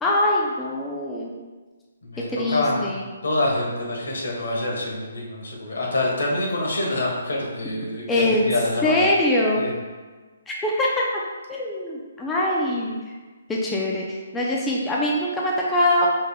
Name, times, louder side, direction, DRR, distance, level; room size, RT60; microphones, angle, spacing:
voice 1, 0.0-1.3 2.3-3.0 8.1-8.5 8.8-9.6 10.5-11.2 11.5-13.1 13.5-16.1, left 1 dB, 10° left, -4 dB, 0.5 m, -23 dB
voice 2, 2.0-9.1 9.6-9.7, left 2 dB, 80° left, -2 dB, 1.5 m, -26 dB
6.3 x 3.4 x 2.3 m, 1.4 s
hypercardioid pair, 150°, 0 cm